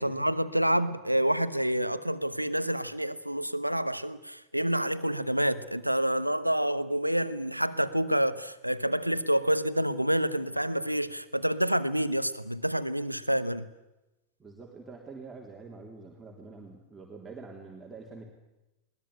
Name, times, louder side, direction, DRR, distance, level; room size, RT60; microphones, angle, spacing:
voice 1, 0.0-13.6, right 1 dB, 90° right, 14 dB, 1.1 m, -28 dB
voice 2, 14.4-18.3, right 4 dB, 15° right, -1 dB, 3.4 m, -46 dB
21.0 x 20.0 x 9.9 m, 0.99 s
figure-of-eight pair, 90°, 0 cm